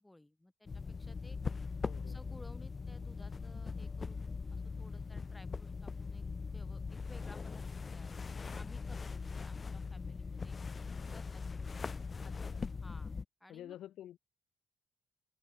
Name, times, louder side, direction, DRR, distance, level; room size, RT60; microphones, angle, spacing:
voice 1, 0.0-1.4 2.0-10.6 11.1-11.9 12.2-13.1 13.4-13.8, left 1 dB, 10° left, 4.4 m, -58 dB
sound 1, 0.7-13.2, left 4 dB, 35° left, 0.8 m, -41 dB
voice 2, 1.8-2.2 10.1-10.2 11.1-11.2 12.2-12.6 13.5-14.2, left 12 dB, 75° left, 0.9 m, -50 dB
open air
cardioid pair, 90°, 0 cm